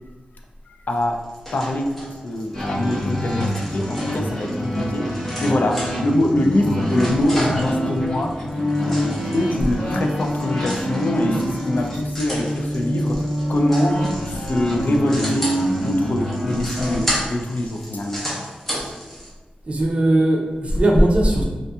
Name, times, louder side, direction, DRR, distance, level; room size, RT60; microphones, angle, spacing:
voice 1, 0.7-1.2 1.5-2.0 2.2-5.1 5.4-8.3 8.8-13.2 13.5-14.0 14.3-15.5 15.8-18.2, left 1 dB, 70° left, 2 dB, 0.3 m, -23 dB
sound 1, 1.0-19.3, equal, 10° left, 0.8 m, -33 dB
sound 2, 2.5-17.0, equal, 30° left, 1.5 m, -25 dB
voice 2, 19.7-21.4, right 1 dB, 45° right, -1 dB, 0.5 m, -18 dB
2.7 x 2.5 x 2.3 m, 1.2 s
wide cardioid pair, 110°, 3 cm